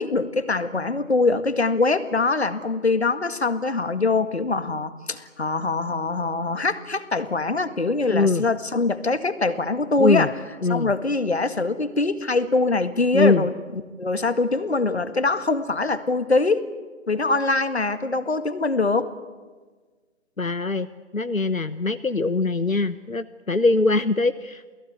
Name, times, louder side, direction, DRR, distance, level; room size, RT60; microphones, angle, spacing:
voice 1, 0.0-10.3 10.7-16.6 17.1-19.1, left 3 dB, 55° left, 11 dB, 2.0 m, -23 dB
voice 2, 8.1-8.4 10.0-10.3 10.6-10.9 13.1-13.4 20.4-20.9 21.1-24.6, left 3 dB, 85° left, 12 dB, 1.1 m, -22 dB
29.0 x 18.5 x 9.4 m, 1.4 s
figure-of-eight pair, 155°, 40 cm